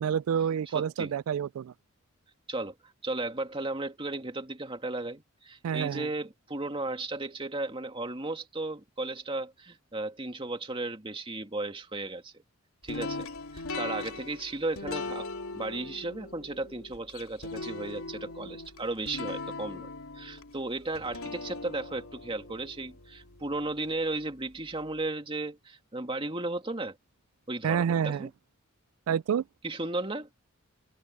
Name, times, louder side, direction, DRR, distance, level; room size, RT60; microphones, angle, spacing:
voice 1, 0.0-1.7 5.6-6.1 27.6-28.3 29.1-29.4, right 8 dB, 85° right, 0.3 m, -28 dB
voice 2, 0.7-1.1 2.5-2.8 3.0-12.4 12.8-13.3 13.5-15.3 15.5-19.9 20.2-27.0 27.5-28.3 29.6-30.3, right 2 dB, 25° right, 2.2 m, -35 dB
sound 1, 12.9-23.9, left 3 dB, 85° left, 3.0 m, -40 dB
open air
head